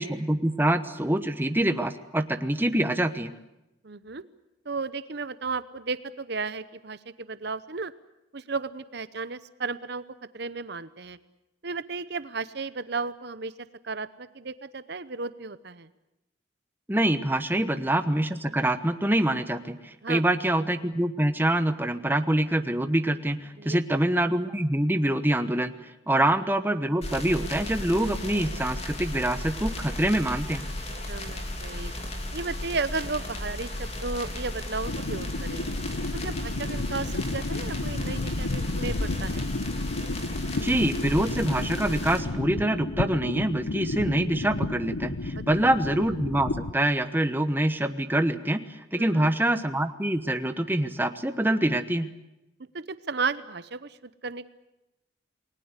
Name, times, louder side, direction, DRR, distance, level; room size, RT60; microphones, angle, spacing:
voice 1, 0.0-3.3 16.9-25.7 26.1-30.7 40.6-52.1, right 1 dB, 10° right, 9 dB, 1.1 m, -25 dB
voice 2, 3.8-4.2 4.6-7.9 8.3-10.0 10.3-11.2 11.6-13.5 13.8-15.9 20.0-20.2 23.6-23.8 26.1-26.2 31.1-31.9 32.3-35.6 36.1-39.5 49.0-49.3 52.7-54.5, right 4 dB, 55° right, 14 dB, 0.8 m, -34 dB
sound 1, 27.0-42.2, left 1 dB, 30° left, 3.7 m, -35 dB
sound 2, 34.8-46.7, left 2 dB, 90° left, 0.9 m, -32 dB
28.5 x 20.5 x 8.2 m, 0.92 s
head